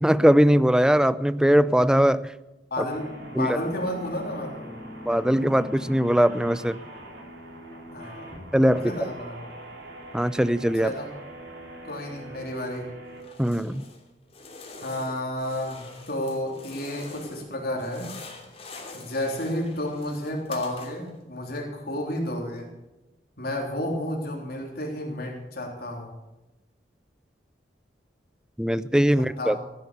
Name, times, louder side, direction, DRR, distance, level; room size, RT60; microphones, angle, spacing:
voice 1, 0.0-2.2 3.3-3.6 5.1-6.8 8.5-8.9 10.1-10.9 13.4-13.8 28.6-29.6, equal, 5° right, 16 dB, 0.4 m, -20 dB
voice 2, 2.7-4.7 7.9-8.3 8.7-9.5 10.8-11.1 11.8-12.9 14.8-18.1 18.9-22.7 23.4-26.1 29.4-29.6, left 1 dB, 60° left, 0 dB, 3.4 m, -31 dB
sound 1, 2.9-13.2, right 1 dB, 70° right, 3.5 m, -42 dB
sound 2, 13.2-14.0 14.3-17.5 17.8-21.2, left 3 dB, 35° left, 3.1 m, -45 dB
15.5 x 10.5 x 6.8 m, 1.0 s
head